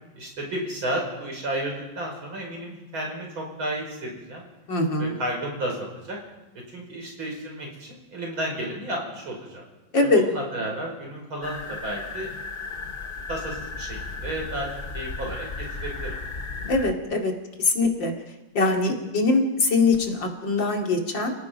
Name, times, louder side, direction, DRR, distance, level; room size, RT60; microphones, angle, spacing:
voice 1, 0.2-4.4 5.0-6.2 6.7-9.6 10.1-12.6 13.3-14.7 14.9-16.2, right 1 dB, 90° right, 0 dB, 6.4 m, -32 dB
voice 2, 4.7-5.2 9.9-10.2 16.7-17.3 17.6-18.1 18.5-21.3, left 3 dB, 65° left, 2 dB, 3.2 m, -22 dB
sound 1, 11.4-16.9, left 4 dB, 30° left, 1.1 m, -35 dB
29.5 x 18.0 x 5.3 m, 1.1 s
omnidirectional pair, 2.2 m